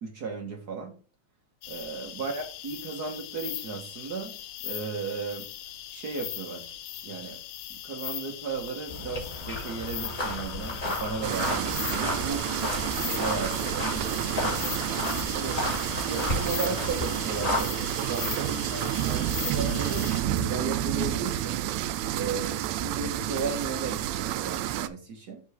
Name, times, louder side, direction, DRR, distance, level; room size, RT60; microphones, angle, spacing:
voice 1, 0.0-0.9 1.7-4.4 4.6-5.5 5.9-6.7 7.0-7.4 7.7-12.5 12.9-14.7 15.3-15.6 16.1-21.6 22.1-25.4, right 4 dB, 55° right, 2 dB, 1.1 m, -35 dB
sound 1, 1.6-20.2, left 12 dB, 80° left, 2.1 m, -39 dB
sound 2, 8.9-17.6, left 2 dB, 25° left, 2.5 m, -33 dB
sound 3, 11.2-24.9, right 12 dB, 80° right, 1.7 m, -30 dB
5.1 x 4.7 x 6.2 m, 0.38 s
omnidirectional pair, 3.4 m